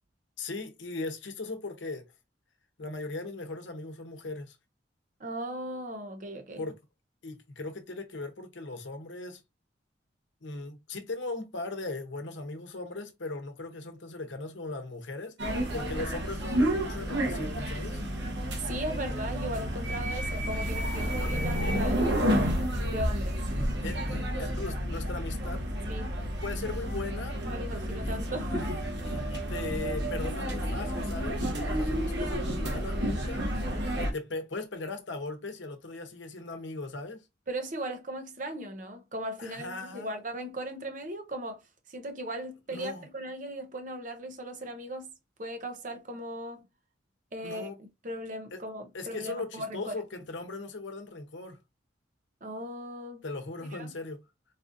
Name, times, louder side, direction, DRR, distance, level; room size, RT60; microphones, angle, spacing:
voice 1, 0.4-2.1 2.8-4.6 6.6-6.7 7.2-9.4 10.4-15.3 15.7-18.0 23.8-25.6 26.4-27.4 28.0-28.2 29.0-33.4 34.0-37.3 39.4-40.1 42.7-43.0 47.4-47.8 48.5-48.6 48.9-51.6 53.2-54.2, left 3 dB, 80° left, 0.8 m, -38 dB
voice 2, 5.2-6.6 18.6-22.6 22.9-23.4 25.9-26.1 27.4-28.9 37.5-41.6 41.9-45.1 45.4-46.6 47.3-47.7 48.0-49.9 52.4-53.2 53.7-53.9, right 1 dB, 45° right, 0.7 m, -38 dB
sound 1, 15.4-34.1, equal, 70° right, 0.9 m, -30 dB
4.1 x 2.5 x 2.6 m
head